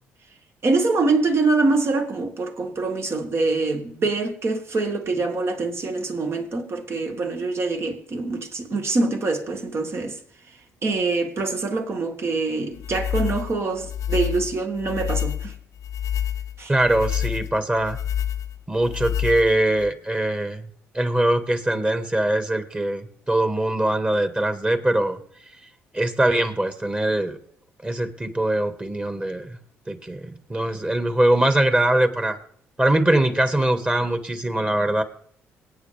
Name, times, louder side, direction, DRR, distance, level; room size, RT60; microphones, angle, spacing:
voice 1, 0.6-10.2 10.8-15.5 16.6-16.7, right 3 dB, 45° right, 2.0 m, -24 dB
sound 1, 12.8-19.9, left 10 dB, 65° left, 0.7 m, -28 dB
voice 2, 16.7-18.0 18.7-20.7 20.9-25.2 25.9-27.4 27.8-29.6 29.9-32.4 32.8-35.0, right 1 dB, 20° right, 2.0 m, -22 dB
24.0 x 9.0 x 3.5 m
hypercardioid pair, 55°, 6 cm